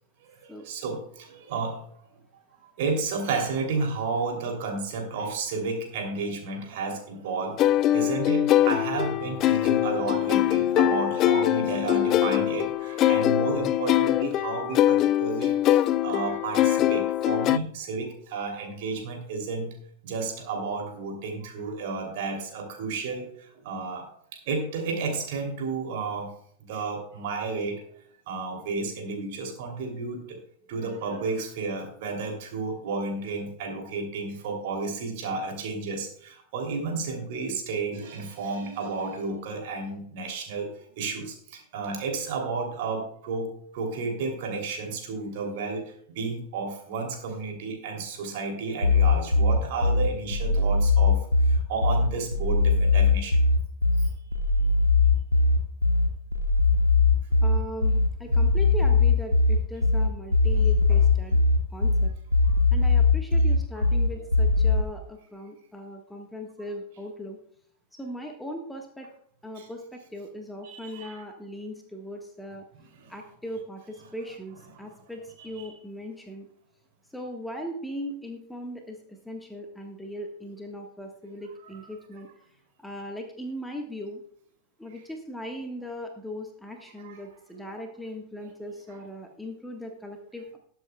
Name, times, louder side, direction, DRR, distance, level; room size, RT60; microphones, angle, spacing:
voice 1, 0.2-1.8 2.8-19.7 20.0-26.3 26.6-27.8 28.3-30.4 30.7-40.7 41.0-51.2 51.5-53.4 54.0-54.1 58.3-58.4 60.9-61.0 69.6-69.7 70.6-71.2 72.8-73.1 74.7-74.8 75.4-75.7 81.0-81.1 87.0-87.2 87.5-87.6 88.9-89.0, right 4 dB, 50° right, 2 dB, 3.0 m, -32 dB
sound 1, 7.6-17.6, left 13 dB, 35° left, 0.4 m, -23 dB
sound 2, 48.8-64.8, left 3 dB, 85° left, 0.8 m, -21 dB
voice 2, 57.4-61.4 61.7-62.1 62.7-67.4 67.9-69.1 69.4-72.7 73.1-76.5 77.1-82.3 82.8-84.2 84.8-90.6, equal, 5° left, 2 dB, 1.4 m, -39 dB
20.0 x 7.9 x 2.3 m, 0.63 s
figure-of-eight pair, 90°, 0 cm